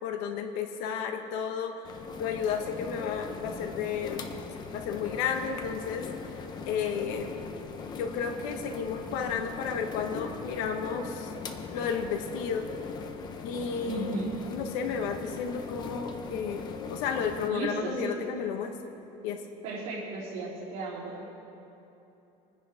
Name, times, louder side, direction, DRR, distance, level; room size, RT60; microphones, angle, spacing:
voice 1, 0.0-4.3 4.7-6.1 6.6-7.4 8.0-11.3 11.7-12.7 13.4-14.2 14.5-18.8 19.2-19.5, left 6 dB, 85° left, 5 dB, 1.3 m, -32 dB
sound 1, 1.8-17.5, left 5 dB, 30° left, 0.9 m, -40 dB
voice 2, 13.8-14.4 17.5-18.1 19.6-21.3, right 3 dB, 70° right, -9 dB, 3.3 m, -35 dB
27.5 x 10.0 x 3.6 m, 3.0 s
cardioid pair, 170°, 15 cm